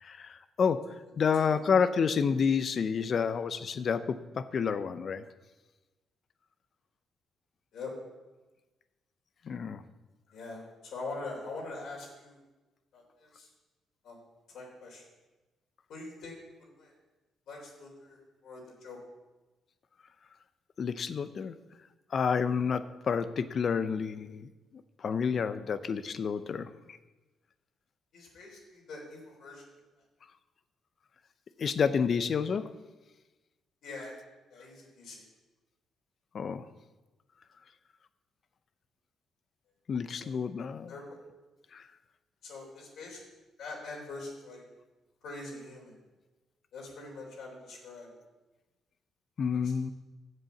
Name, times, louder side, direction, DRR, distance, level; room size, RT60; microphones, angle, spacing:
voice 1, 0.0-5.2 9.5-9.8 20.8-21.5 22.1-24.5 25.0-26.7 31.6-32.7 36.3-36.6 39.9-40.9 41.7-41.8 49.4-49.9, left 6 dB, 50° left, 13 dB, 0.6 m, -29 dB
voice 2, 1.2-1.6 7.7-7.9 10.3-12.4 12.9-13.5 14.0-14.2 14.5-15.0 15.9-16.9 17.5-19.0 28.1-29.7 33.8-34.2 34.5-35.3 40.1-40.4 40.9-41.2 42.4-44.6 45.2-46.0 46.7-48.1 49.5-49.7, left 3 dB, 75° left, -2 dB, 3.5 m, -44 dB
7.8 x 7.6 x 7.1 m, 1.1 s
cardioid pair, 90°, 0 cm